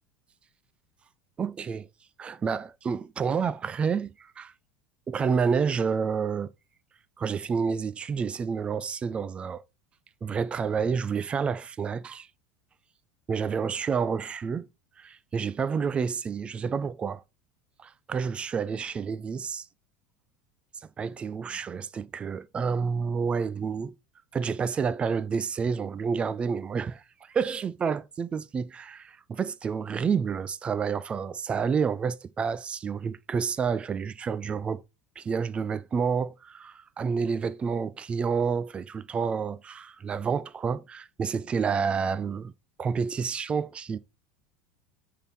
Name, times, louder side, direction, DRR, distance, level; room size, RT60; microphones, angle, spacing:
voice 1, 1.4-1.9 2.2-4.5 5.1-6.5 7.2-9.6 10.2-12.3 13.3-14.7 15.0-17.2 17.8-19.7 21.0-23.9 24.3-34.8 35.2-42.5 42.8-44.0, right 6 dB, 20° right, 0.4 m, -29 dB
6.4 x 3.6 x 5.6 m
supercardioid pair, 155°, 6 cm